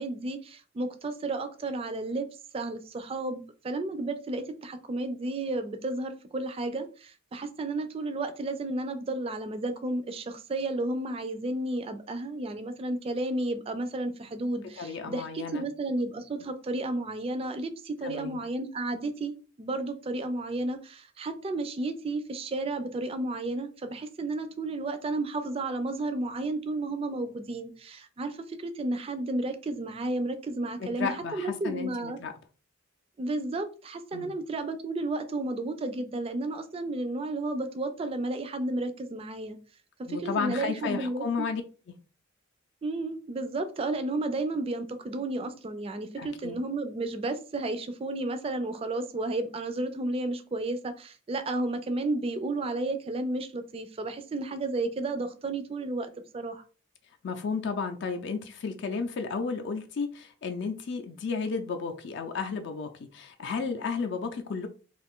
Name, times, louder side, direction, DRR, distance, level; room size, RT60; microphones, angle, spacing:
voice 1, 0.0-2.3 2.5-19.3 19.6-32.2 33.2-39.6 40.0-41.2 42.8-56.6, right 2 dB, 30° right, 0.3 m, -32 dB
voice 2, 14.8-15.7 18.0-18.4 30.8-32.3 34.1-34.3 40.1-41.6 46.2-46.6 57.2-64.7, left 5 dB, 60° left, 0.4 m, -33 dB
2.5 x 2.4 x 3.5 m
head